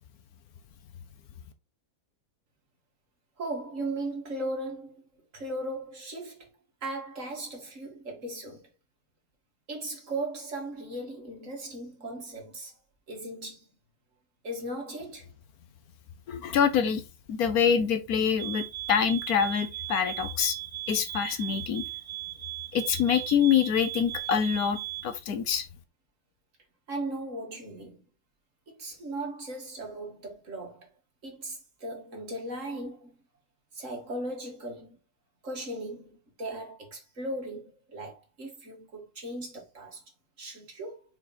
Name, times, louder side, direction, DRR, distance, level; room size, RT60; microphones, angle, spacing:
voice 1, 3.4-5.0 5.3-6.4 6.8-8.6 9.7-12.7 13.1-13.6 14.4-15.3 26.9-28.0 28.8-30.9 31.2-33.2 33.7-35.0 35.4-40.0 40.4-41.0, right 1 dB, 50° right, 2.2 m, -37 dB
voice 2, 16.3-17.0 17.3-20.6 20.9-21.8 22.7-24.8 25.0-25.6, left 7 dB, 70° left, 1.3 m, -25 dB
sound 1, 18.4-25.1, right 17 dB, 80° right, 2.1 m, -38 dB
5.8 x 4.4 x 4.1 m
omnidirectional pair, 1.7 m